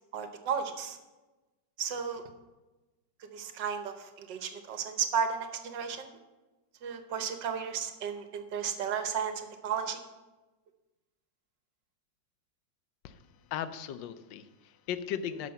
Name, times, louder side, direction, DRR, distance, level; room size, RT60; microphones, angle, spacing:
voice 1, 0.1-1.0 1.8-2.2 3.3-6.1 6.8-10.0, right 7 dB, 75° right, 7 dB, 1.6 m, -34 dB
voice 2, 13.0-15.5, left 9 dB, 90° left, 12 dB, 1.3 m, -37 dB
11.5 x 6.1 x 5.4 m, 1.1 s
omnidirectional pair, 1.9 m